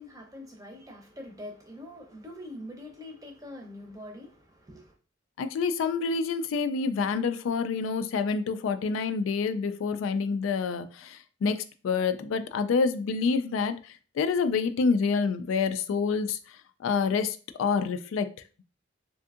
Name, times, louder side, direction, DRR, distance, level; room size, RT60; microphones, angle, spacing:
voice 1, 0.0-5.0, left 1 dB, 15° right, 0.6 m, -44 dB
voice 2, 5.4-16.4 16.8-18.3, left 5 dB, 80° left, 0.3 m, -27 dB
3.4 x 2.6 x 2.4 m
head